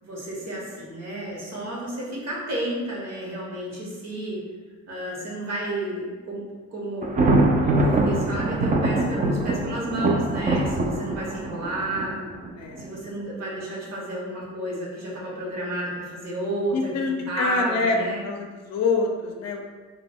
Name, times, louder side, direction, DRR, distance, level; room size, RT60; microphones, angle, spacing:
voice 1, 0.0-4.4 4.9-12.2 12.8-18.2, right 1 dB, 60° right, -4 dB, 1.0 m, -31 dB
Thunder, 7.0-12.8, right 2 dB, 30° right, 0.4 m, -23 dB
voice 2, 12.6-12.9 16.7-18.0 18.2-19.7, left 4 dB, 60° left, 2 dB, 0.5 m, -26 dB
2.2 x 2.1 x 3.4 m, 1.4 s
cardioid pair, 90°, 30 cm